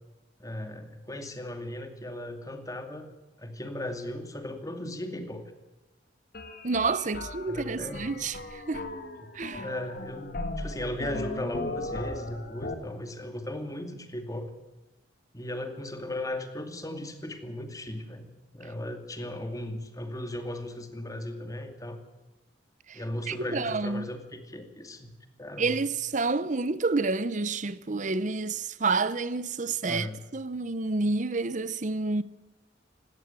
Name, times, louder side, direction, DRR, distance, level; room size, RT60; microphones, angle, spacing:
voice 1, 0.4-3.1 3.4-5.5 7.5-8.1 9.5-14.5 15.3-18.3 18.5-22.0 22.9-25.1 25.4-25.8 29.9-30.2, left 1 dB, 20° left, 2.5 m, -37 dB
sound 1, 6.3-12.7, left 2 dB, 55° left, 2.5 m, -37 dB
voice 2, 6.6-8.9 9.3-9.6 22.9-24.1 25.6-32.2, right 3 dB, 45° right, 0.8 m, -29 dB
18.5 x 17.5 x 9.0 m
head